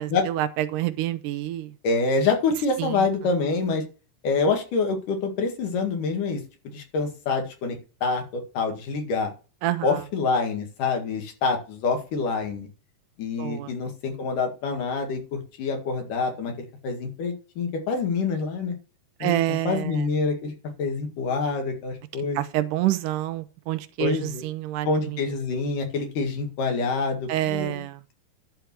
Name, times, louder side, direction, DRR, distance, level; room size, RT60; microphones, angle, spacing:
voice 1, 0.0-1.7 2.8-3.1 9.6-9.9 13.4-13.7 19.2-19.9 22.4-25.2 27.3-28.0, right 14 dB, 80° right, 12 dB, 2.2 m, -27 dB
voice 2, 1.8-3.8 4.2-9.3 9.8-12.7 13.2-16.5 16.8-18.7 19.2-19.4 19.7-22.4 24.0-24.5 24.9-27.8, left 4 dB, 75° left, 3 dB, 3.6 m, -26 dB
11.5 x 4.7 x 6.1 m, 0.34 s
omnidirectional pair, 3.8 m